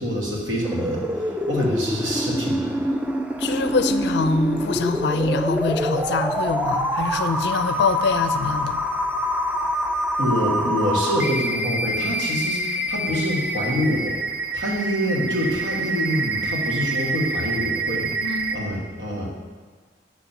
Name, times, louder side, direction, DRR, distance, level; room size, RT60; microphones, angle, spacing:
voice 1, 0.0-3.0 10.2-14.2 14.5-19.3, equal, 85° right, 1.7 m, -26 dB
sound 1, 0.6-18.6, right 1 dB, 5° right, 0.3 m, -26 dB
voice 2, 3.4-8.9 18.2-18.6, left 4 dB, 60° left, 0.4 m, -24 dB
7.2 x 4.4 x 5.7 m
head